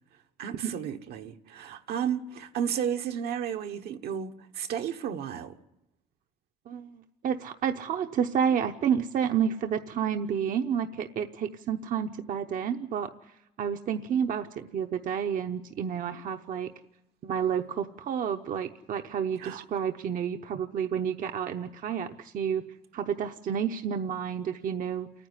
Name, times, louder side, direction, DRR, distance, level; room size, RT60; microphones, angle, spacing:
voice 1, 0.4-5.6 19.4-19.6, right 8 dB, 70° right, 1.2 m, -33 dB
voice 2, 6.7-13.1 13.6-16.7 17.2-22.7 22.9-25.1, right 8 dB, 55° right, 0.8 m, -30 dB
29.0 x 9.8 x 9.8 m
cardioid pair, 110°, 17 cm